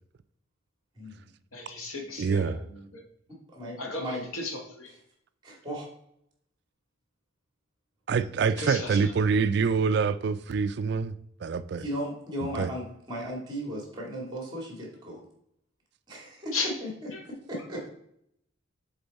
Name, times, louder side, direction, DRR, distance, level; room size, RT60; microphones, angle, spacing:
voice 1, 1.0-1.3 3.5-4.2 5.4-5.9 11.8-15.2 16.1-16.6 16.8-16.9 17.5-17.9, equal, 20° right, 2.1 m, -36 dB
voice 2, 1.5-3.0 3.8-5.0 8.6-9.1 16.5-16.7 17.1-17.2, left 3 dB, 90° left, 1.5 m, -35 dB
voice 3, 2.2-2.6 8.1-11.1 11.4-11.8 12.6-12.7, right 5 dB, 55° right, 0.3 m, -25 dB
7.0 x 3.9 x 4.1 m
head